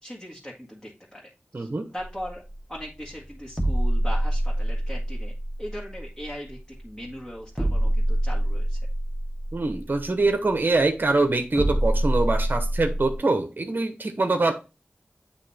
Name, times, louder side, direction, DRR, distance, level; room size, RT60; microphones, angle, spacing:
voice 1, 0.0-1.3 1.6-2.4 2.7-5.3 5.6-6.6 6.8-8.8, equal, 10° left, -4 dB, 1.7 m, -39 dB
voice 2, 1.5-1.9 9.5-14.5, right 2 dB, 50° right, 6 dB, 0.9 m, -24 dB
sound 1, 2.0-13.2, right 1 dB, 5° right, 1.4 m, -27 dB
8.3 x 2.9 x 4.2 m, 0.30 s
cardioid pair, 45°, 4 cm